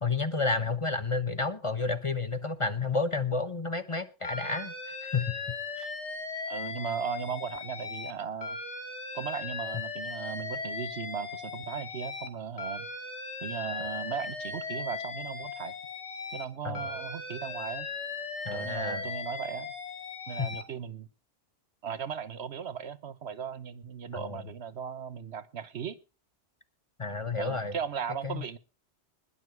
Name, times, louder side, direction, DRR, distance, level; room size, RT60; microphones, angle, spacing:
voice 1, 0.0-5.4 5.8-5.9 16.6-16.9 18.4-19.1 20.4-20.5 24.1-24.4 27.0-27.7 28.2-28.4, left 3 dB, 30° left, 1.0 m, -31 dB
Alarm, 4.2-8.1 8.4-12.3 12.6-16.5 16.7-20.6, left 4 dB, 85° left, 2.1 m, -38 dB
voice 2, 6.5-8.6 9.1-12.9 13.4-15.7 16.3-17.9 18.5-19.7 20.3-21.1 21.8-26.0 27.4-28.6, right 7 dB, 70° right, 1.2 m, -37 dB
20.5 x 7.1 x 4.6 m
omnidirectional pair, 1.2 m